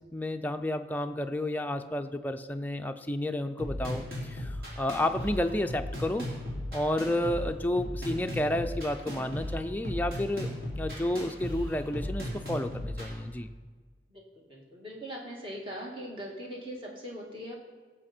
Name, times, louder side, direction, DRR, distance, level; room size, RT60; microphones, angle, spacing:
voice 1, 0.1-6.3 6.7-13.5, left 1 dB, 10° left, 6 dB, 0.4 m, -31 dB
sound 1, 3.6-13.1, left 1 dB, 55° right, 3.7 m, -36 dB
voice 2, 14.1-17.6, equal, 30° right, -1 dB, 2.1 m, -41 dB
17.5 x 7.3 x 4.4 m, 1.4 s
head